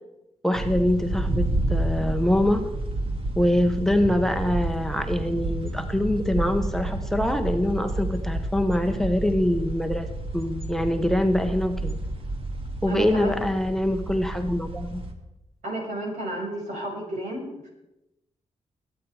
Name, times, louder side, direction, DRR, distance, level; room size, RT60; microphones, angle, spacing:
voice 1, 0.4-2.6 3.4-10.1 10.3-11.9 12.8-15.0, left 1 dB, 5° left, 7 dB, 1.1 m, -24 dB
sound 1, 0.5-15.1, right 2 dB, 50° right, 2.2 m, -30 dB
voice 2, 12.9-13.4 15.6-17.7, right 1 dB, 70° right, -1 dB, 6.0 m, -31 dB
22.0 x 8.6 x 4.9 m, 0.92 s
cardioid pair, 80°, 13 cm